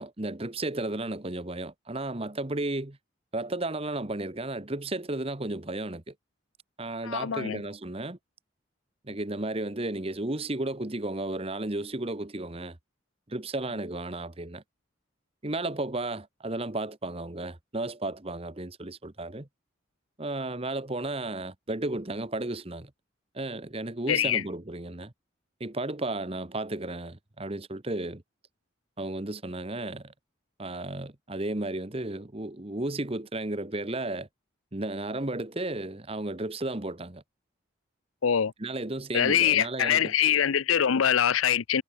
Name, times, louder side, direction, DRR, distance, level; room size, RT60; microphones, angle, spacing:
voice 1, 0.0-3.0 3.3-6.1 6.8-8.2 9.0-12.8 13.3-14.6 15.4-19.5 20.2-22.9 23.3-25.1 25.6-28.2 29.0-30.1 30.6-34.3 34.7-37.2 38.6-40.1, right 2 dB, 30° right, 1.2 m, -33 dB
voice 2, 7.0-7.6 24.1-24.4 38.2-38.5 39.1-41.8, left 9 dB, 90° left, 0.6 m, -24 dB
head